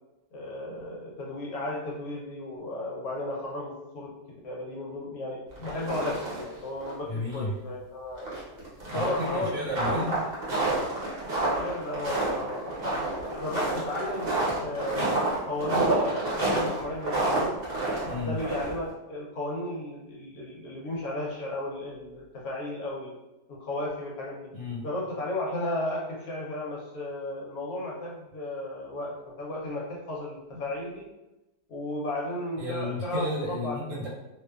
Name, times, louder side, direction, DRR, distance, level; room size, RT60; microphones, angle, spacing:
voice 1, 0.3-4.1 4.4-8.4 8.9-9.5 9.8-10.0 11.5-13.0 13.3-17.6 18.2-23.1 23.5-24.5 24.8-31.1 31.7-33.8, left 1 dB, 70° left, -3 dB, 1.0 m, -34 dB
sound 1, 5.5-6.5 6.8-6.9 7.3-7.4 8.2-18.9, right 2 dB, 50° right, 0.8 m, -29 dB
voice 2, 7.1-7.6 8.9-10.2 18.0-18.4 24.5-24.8 32.6-34.1, left 1 dB, 70° right, -5 dB, 1.2 m, -32 dB
2.6 x 2.1 x 2.2 m, 1.0 s
omnidirectional pair, 1.7 m